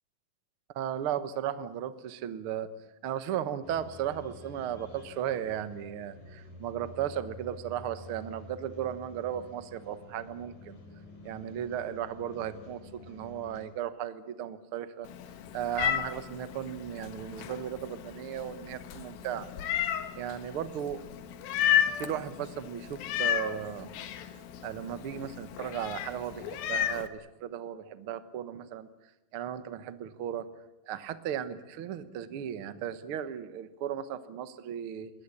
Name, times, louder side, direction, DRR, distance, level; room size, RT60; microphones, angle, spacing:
voice 1, 0.7-2.7 3.0-10.8 11.2-15.1 15.5-19.5 20.1-21.0 21.9-23.9 24.6-28.9 29.3-30.5 30.9-35.1, right 10 dB, 75° right, 12 dB, 1.2 m, -36 dB
sound 1, 3.6-13.6, left 1 dB, 55° left, 6.3 m, -49 dB
Meow, 15.0-27.1, left 10 dB, 75° left, 3.1 m, -33 dB
22.5 x 18.5 x 9.9 m, 1.0 s
omnidirectional pair, 4.4 m